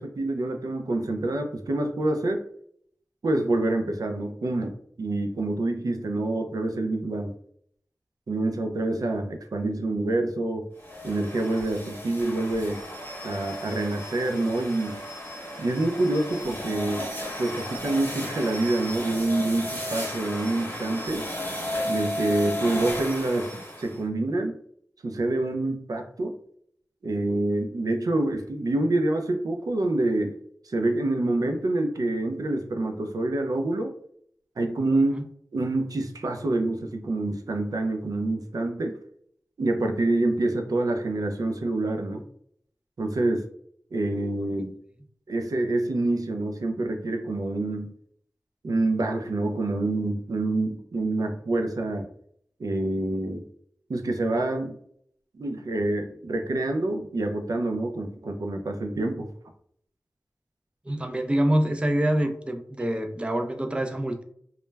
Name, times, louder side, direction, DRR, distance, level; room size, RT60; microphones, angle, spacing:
voice 1, 0.0-2.4 3.2-7.3 8.3-10.7 11.0-12.8 13.2-15.0 15.6-17.1 17.4-21.3 21.8-24.6 25.0-26.4 27.0-30.3 30.6-34.0 34.6-35.2 35.5-39.0 39.6-42.2 43.0-43.5 43.9-44.7 45.3-47.9 48.6-52.1 52.6-53.4 53.9-54.8 55.3-59.3, right 2 dB, 80° right, 4 dB, 0.4 m, -27 dB
sound 1, 10.8-24.0, left 1 dB, 35° left, 1.0 m, -34 dB
voice 2, 60.9-64.2, right 1 dB, 15° right, 6 dB, 0.4 m, -25 dB
2.2 x 2.0 x 3.2 m, 0.65 s
wide cardioid pair, 60°, 6 cm